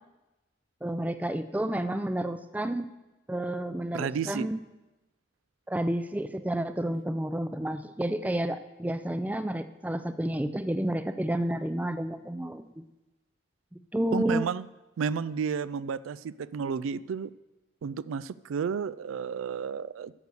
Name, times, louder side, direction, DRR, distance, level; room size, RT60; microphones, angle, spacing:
voice 1, 0.8-2.9 3.3-4.6 5.7-12.8 13.7-14.5, right 1 dB, 10° right, 11 dB, 0.3 m, -30 dB
voice 2, 3.9-4.5 14.1-14.7 15.0-17.3 17.8-20.1, right 6 dB, 90° right, 18 dB, 0.3 m, -32 dB
11.0 x 6.8 x 6.7 m, 1.1 s
head